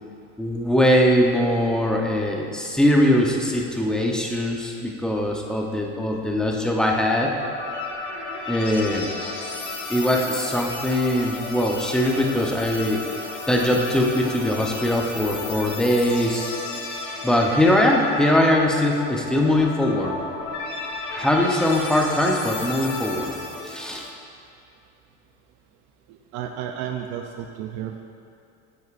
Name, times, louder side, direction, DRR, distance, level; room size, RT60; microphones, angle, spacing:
voice 1, 0.4-7.3 8.5-9.1 9.9-13.0 13.5-16.5 17.2-20.2 21.1-23.3 23.6-24.1, left 1 dB, ahead, 0 dB, 0.7 m, -21 dB
sound 1, 7.2-24.1, left 3 dB, 60° left, 1.5 m, -33 dB
voice 2, 26.1-28.0, right 9 dB, 65° right, 4 dB, 0.5 m, -32 dB
9.4 x 8.0 x 2.5 m, 2.6 s
cardioid pair, 130°, 31 cm